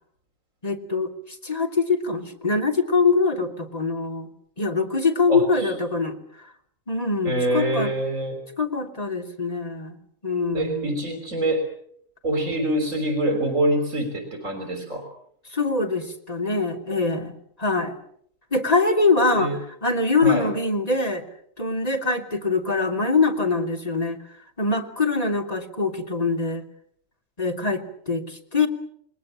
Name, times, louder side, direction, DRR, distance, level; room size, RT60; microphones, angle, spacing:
voice 1, 0.6-4.3 4.6-6.5 6.9-7.9 8.6-10.0 10.2-11.0 15.5-18.0 18.5-21.2 21.6-24.2 24.6-26.6 27.4-28.7, left 3 dB, 30° left, 3 dB, 3.2 m, -23 dB
voice 2, 5.3-5.8 7.2-8.4 10.5-11.7 12.2-15.1 19.4-19.6 20.2-20.5, right 1 dB, 75° right, 5 dB, 4.0 m, -25 dB
29.5 x 21.0 x 7.6 m, 0.66 s
omnidirectional pair, 1.4 m